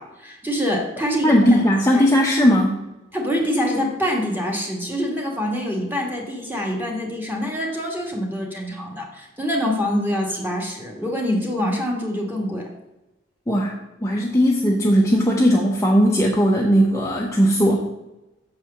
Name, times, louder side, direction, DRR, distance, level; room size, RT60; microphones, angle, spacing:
voice 1, 0.0-1.7 1.9-2.1 3.1-12.7, equal, 10° right, 0 dB, 1.5 m, -25 dB
voice 2, 1.2-2.8 13.5-17.8, equal, 15° left, -1 dB, 0.7 m, -18 dB
6.6 x 4.7 x 6.9 m, 0.98 s
head